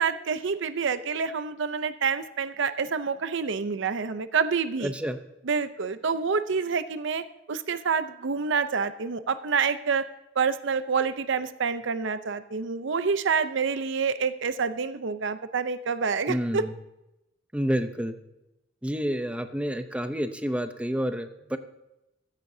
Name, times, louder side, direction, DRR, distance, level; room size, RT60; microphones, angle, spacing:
voice 1, 0.0-4.9 5.5-10.1 10.4-16.6, right 5 dB, 65° right, 12 dB, 0.6 m, -27 dB
voice 2, 4.8-5.2 16.3-16.7 17.5-18.1 18.8-21.6, equal, 5° right, 8 dB, 0.7 m, -29 dB
15.0 x 13.5 x 2.7 m, 0.90 s
head